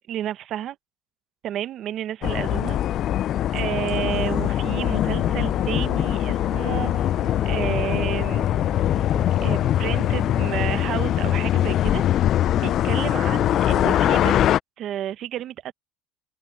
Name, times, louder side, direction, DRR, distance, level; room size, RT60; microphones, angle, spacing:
voice 1, 0.1-0.8 1.4-2.8 3.5-6.9 7.4-8.5 9.4-12.0 12.6-14.5 14.8-15.7, right 11 dB, 50° right, 0.7 m, -31 dB
sound 1, 2.2-14.6, left 12 dB, 50° left, 0.3 m, -22 dB
sound 2, 3.8-10.6, right 19 dB, 75° right, 2.0 m, -41 dB
open air
cardioid pair, 125°, 0 cm